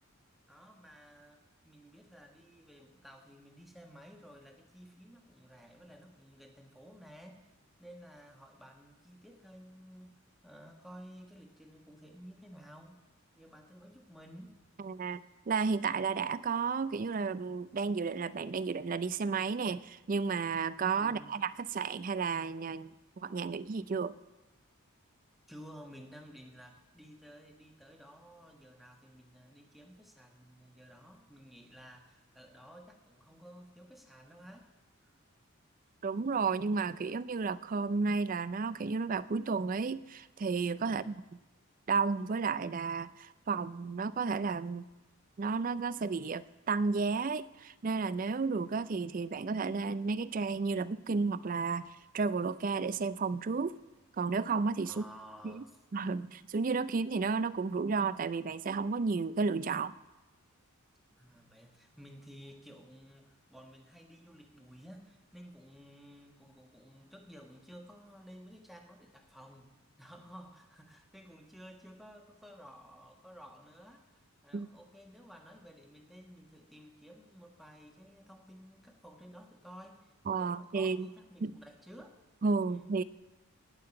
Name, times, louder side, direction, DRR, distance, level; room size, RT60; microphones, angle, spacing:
voice 1, 0.5-7.4 7.8-10.1 10.4-12.9 13.3-14.5 21.0-21.4 25.5-34.7 35.0-35.1 40.8-41.2 54.8-55.7 61.2-82.2 82.6-83.0, equal, ahead, 3 dB, 1.2 m, -54 dB
voice 2, 14.8-22.9 23.2-24.1 36.0-41.1 41.9-44.8 45.4-53.8 54.2-55.0 55.4-55.6 55.9-59.9 74.5-74.7 80.3-81.1 81.4-81.5 82.4-83.0, right 4 dB, 40° right, 17 dB, 0.4 m, -32 dB
17.0 x 5.8 x 9.6 m, 1.1 s
head